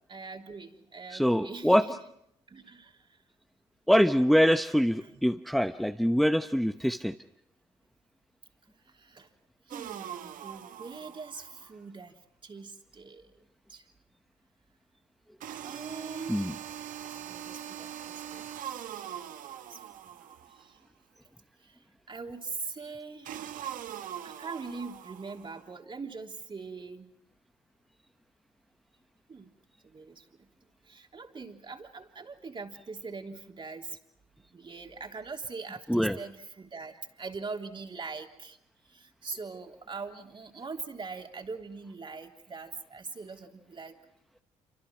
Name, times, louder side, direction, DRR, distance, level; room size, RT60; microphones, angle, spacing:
voice 1, 0.1-2.0 2.5-3.2 5.0-5.2 8.9-9.3 9.7-13.4 13.7-13.9 15.6-16.6 17.0-18.4 19.7-19.8 20.5-20.8 21.6-23.3 24.2-27.1 29.3-29.5 29.8-30.5 30.8-34.0 34.5-38.6 38.8-44.0, right 4 dB, 35° right, 3 dB, 3.5 m, -42 dB
voice 2, 1.1-1.8 3.9-7.1 16.3-16.4 35.9-36.2, equal, ahead, 7 dB, 1.0 m, -24 dB
sound 1, 9.7-11.7 15.4-20.7 23.3-25.7, right 10 dB, 70° right, 1.4 m, -42 dB
28.0 x 25.0 x 6.2 m, 0.74 s
hypercardioid pair, 55°, 14 cm